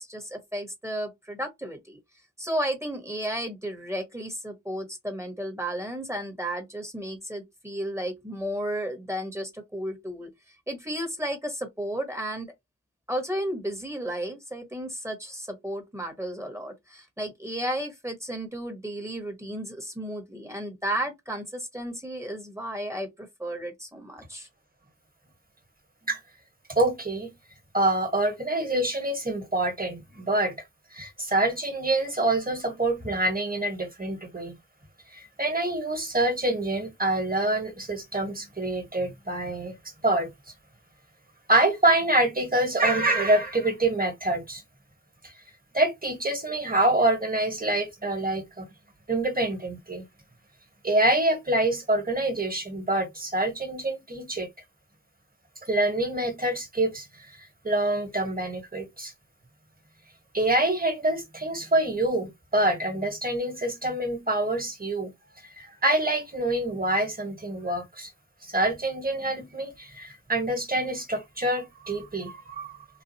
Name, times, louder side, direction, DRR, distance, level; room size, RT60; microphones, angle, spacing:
voice 1, 0.0-2.0 2.4-10.3 10.7-12.5 13.1-24.5, right 1 dB, 10° right, 1.0 m, -33 dB
voice 2, 26.7-27.3 27.7-30.5 30.9-34.6 35.1-39.7 40.0-40.3 41.5-44.6 45.2-45.3 45.7-48.7 49.1-50.0 50.8-54.5 55.6-57.3 57.6-59.1 60.3-65.1 65.6-68.1 68.4-72.8, right 2 dB, 30° right, 1.3 m, -26 dB
4.0 x 2.3 x 2.8 m
wide cardioid pair, 60°, 30 cm